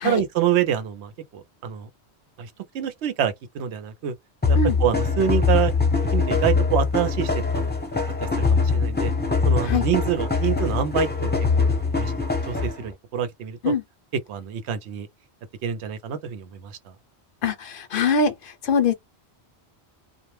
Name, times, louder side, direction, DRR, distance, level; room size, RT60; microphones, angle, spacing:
voice 1, 0.0-1.9 2.4-4.1 4.5-5.7 6.1-7.7 8.2-9.1 9.4-11.3 11.6-11.7 11.9-12.1 12.5-13.7 14.3-15.1 15.6-16.7, right 9 dB, 90° right, 0.9 m, -26 dB
sound 1, 4.4-12.9, left 4 dB, 10° left, 0.5 m, -22 dB
voice 2, 17.4-18.9, left 4 dB, 60° left, 0.6 m, -23 dB
2.2 x 2.0 x 3.0 m
omnidirectional pair, 1.1 m